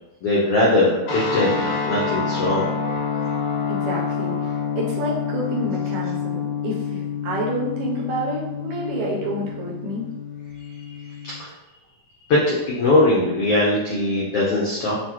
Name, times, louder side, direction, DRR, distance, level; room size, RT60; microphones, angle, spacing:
voice 1, 0.2-2.7 10.6-11.0 11.2-11.5 12.3-15.0, left 2 dB, 85° left, -5 dB, 1.3 m, -21 dB
sound 1, 1.0-11.4, left 6 dB, 60° left, 2.7 m, -27 dB
voice 2, 3.7-10.1, right 1 dB, 80° right, -3 dB, 1.9 m, -29 dB
6.4 x 2.1 x 2.9 m, 0.99 s
omnidirectional pair, 3.7 m